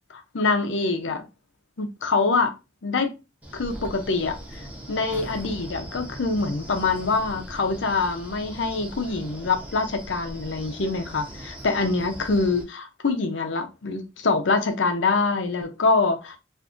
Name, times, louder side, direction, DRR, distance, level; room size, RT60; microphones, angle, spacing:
voice 1, 0.1-1.2 1.8-2.5 2.8-3.2 3.5-16.4, left 3 dB, 75° left, 0.6 m, -25 dB
Wind, 3.4-12.6, right 1 dB, 10° right, 0.9 m, -40 dB
2.5 x 2.5 x 3.6 m
head